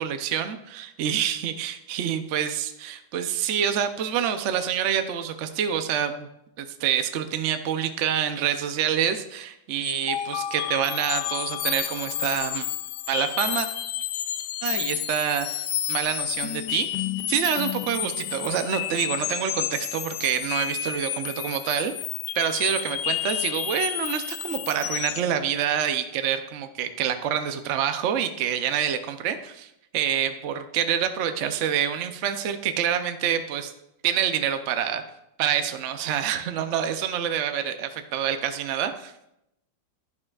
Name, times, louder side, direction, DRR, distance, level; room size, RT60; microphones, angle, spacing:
voice 1, 0.0-6.3 6.6-12.7 13.1-13.7 14.6-21.9 22.3-33.7 34.0-35.0 35.4-39.1, right 9 dB, 75° right, 8 dB, 0.6 m, -27 dB
sound 1, 9.8-25.3, left 12 dB, 75° left, 1.0 m, -30 dB
11.0 x 11.0 x 2.4 m, 0.83 s
omnidirectional pair, 2.1 m